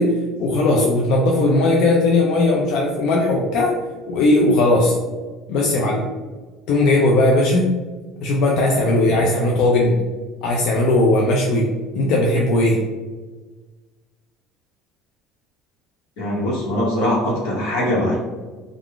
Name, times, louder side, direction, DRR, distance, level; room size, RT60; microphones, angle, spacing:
voice 1, 0.0-3.8 4.1-5.0 5.5-6.0 6.7-7.7 8.2-10.0 10.4-11.7 11.9-12.8, left 2 dB, 60° left, -2 dB, 0.4 m, -18 dB
voice 2, 16.2-18.2, left 1 dB, 85° left, -5 dB, 1.1 m, -21 dB
2.4 x 2.3 x 3.5 m, 1.3 s
cardioid pair, 145°, 0 cm